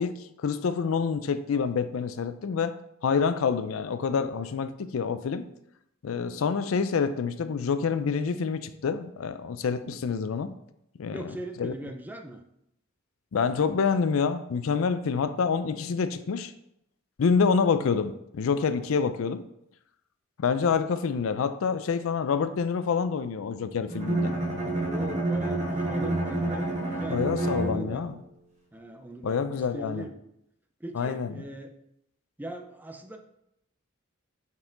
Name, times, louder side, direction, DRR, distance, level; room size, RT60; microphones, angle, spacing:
voice 1, 0.0-2.8 3.0-5.5 6.0-10.5 11.0-11.7 13.3-16.5 17.2-19.4 20.4-24.3 27.1-28.1 29.2-30.1 30.9-31.4, left 5 dB, 75° left, 0.4 m, -27 dB
voice 2, 11.1-12.4 24.8-28.1 28.7-30.1 30.8-31.7 32.4-33.2, right 1 dB, 10° right, 0.5 m, -40 dB
Bowed string instrument, 23.9-28.2, right 2 dB, 35° right, 1.2 m, -29 dB
5.5 x 4.9 x 3.8 m
head